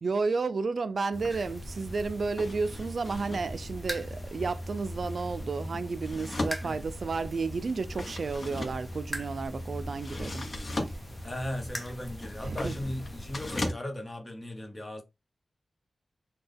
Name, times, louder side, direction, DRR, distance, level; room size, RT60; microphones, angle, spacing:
voice 1, 0.0-10.5 10.8-10.9 12.4-12.8, right 4 dB, 65° right, 0.4 m, -32 dB
sound 1, 1.1-13.7, left 1 dB, 50° left, 0.8 m, -38 dB
sound 2, 1.3-13.5, equal, ahead, 0.9 m, -44 dB
voice 2, 11.2-15.0, left 1 dB, 25° left, 1.0 m, -37 dB
4.0 x 2.2 x 3.4 m
wide cardioid pair, 110°, 0 cm